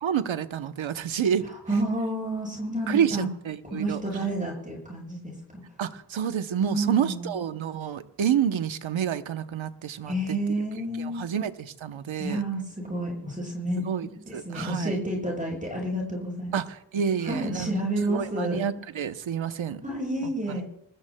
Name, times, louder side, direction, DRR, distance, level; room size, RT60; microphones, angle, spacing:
voice 1, 0.0-1.5 2.9-4.0 5.8-10.1 11.0-12.4 13.8-15.0 16.5-17.7 18.1-19.8 20.5-20.6, right 8 dB, 90° right, 11 dB, 0.8 m, -28 dB
voice 2, 1.4-3.3 3.6-5.6 6.6-7.3 10.1-11.2 12.2-13.8 14.3-16.6 17.2-18.6 19.8-20.6, right 1 dB, 15° right, -2 dB, 6.9 m, -30 dB
26.5 x 20.0 x 2.2 m, 0.78 s
wide cardioid pair, 70°, 46 cm